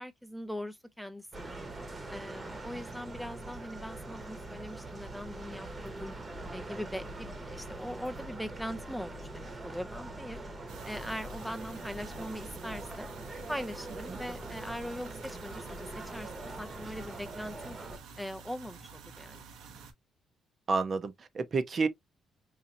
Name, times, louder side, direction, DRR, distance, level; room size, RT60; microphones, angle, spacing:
voice 1, 0.0-1.5 2.1-6.1 6.5-10.4 10.8-13.1 13.5-17.8 18.2-19.4, equal, ahead, 0.5 m, -41 dB
sound 1, 1.3-18.0, right 2 dB, 30° right, 1.0 m, -43 dB
sound 2, 10.7-19.9, right 5 dB, 90° right, 1.0 m, -50 dB
voice 2, 20.7-21.9, right 4 dB, 45° right, 0.7 m, -30 dB
4.1 x 2.7 x 2.5 m
cardioid pair, 90°, 0 cm